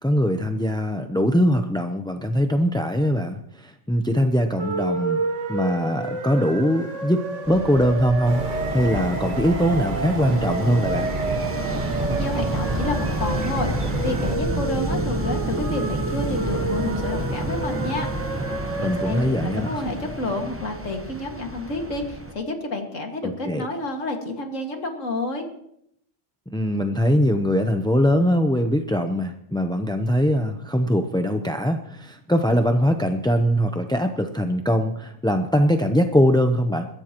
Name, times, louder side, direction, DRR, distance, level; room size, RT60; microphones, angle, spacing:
voice 1, 0.0-5.2 5.5-11.1 18.8-19.8 23.2-23.7 26.5-36.9, equal, 5° left, 6 dB, 0.4 m, -22 dB
sound 1, 4.6-19.3, right 3 dB, 70° right, 1.8 m, -30 dB
sound 2, 7.4-22.3, right 1 dB, 10° right, 1.0 m, -30 dB
sound 3, 8.2-14.4, right 2 dB, 40° right, 1.5 m, -32 dB
voice 2, 12.1-13.7 14.0-18.1 18.8-25.5, left 2 dB, 75° left, 3 dB, 2.3 m, -29 dB
22.0 x 15.0 x 3.0 m, 0.74 s
omnidirectional pair, 1.3 m